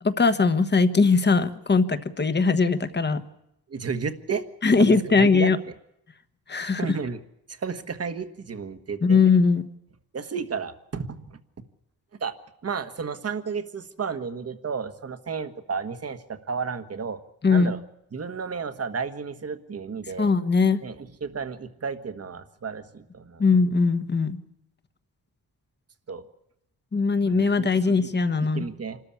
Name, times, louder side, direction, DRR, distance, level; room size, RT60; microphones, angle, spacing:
voice 1, 0.0-3.2 4.6-5.6 6.5-6.9 9.0-9.7 17.4-17.7 20.2-20.8 23.4-24.4 26.9-28.7, left 4 dB, 30° left, 11 dB, 1.2 m, -20 dB
voice 2, 3.7-4.4 4.8-5.7 6.6-7.2 7.5-9.2 10.1-11.4 12.2-12.3 12.6-17.2 17.5-17.8 18.1-20.3 20.8-23.4 26.1-26.3 27.3-28.1 28.5-29.0, right 5 dB, 40° right, 10 dB, 1.5 m, -32 dB
27.0 x 13.5 x 8.6 m, 0.81 s
wide cardioid pair, 170°, 36 cm